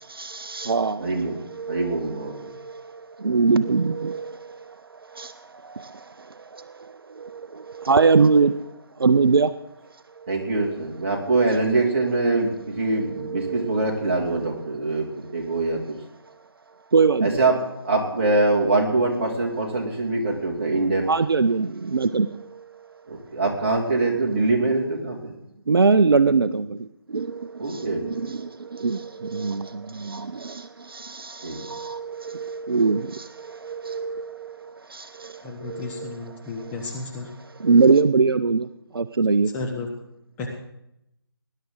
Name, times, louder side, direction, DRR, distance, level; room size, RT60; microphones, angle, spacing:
voice 1, 0.0-9.5 10.2-10.5 12.9-13.9 14.7-14.8 16.9-17.4 21.1-22.9 25.7-36.8 37.6-38.7 38.9-39.5, right 4 dB, 65° right, 13 dB, 0.6 m, -24 dB
voice 2, 1.0-1.4 1.7-2.5 10.3-15.1 15.3-16.0 17.2-21.1 23.1-25.3 27.6-28.2 31.4-31.6, right 2 dB, 30° right, -1 dB, 2.6 m, -24 dB
voice 3, 35.4-37.3 39.5-39.9 40.4-40.5, left 3 dB, 10° left, -1 dB, 0.9 m, -33 dB
19.5 x 10.5 x 3.9 m, 0.81 s
figure-of-eight pair, 155°, 13 cm